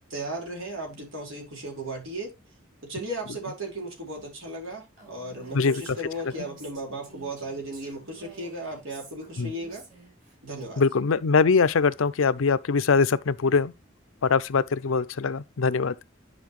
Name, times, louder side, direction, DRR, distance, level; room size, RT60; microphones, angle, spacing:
voice 1, 0.1-2.3 2.9-9.8 10.4-10.8, right 1 dB, 80° right, 4.6 m, -36 dB
Female speech woman speaking, 5.0-10.4, right 3 dB, 40° right, 5.1 m, -50 dB
voice 2, 10.8-13.7 14.2-15.9, left 5 dB, 85° left, 0.5 m, -22 dB
10.5 x 5.4 x 3.1 m
head